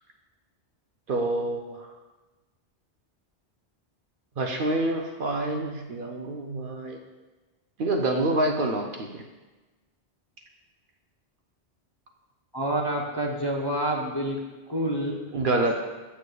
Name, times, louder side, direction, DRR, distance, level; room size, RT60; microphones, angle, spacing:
voice 1, 1.1-1.9 4.4-7.0 7.8-9.2 15.3-15.7, right 2 dB, 60° right, 3 dB, 0.7 m, -27 dB
voice 2, 12.5-15.3, right 1 dB, 30° left, -2 dB, 0.6 m, -28 dB
8.6 x 6.4 x 2.2 m, 1.2 s
omnidirectional pair, 1.1 m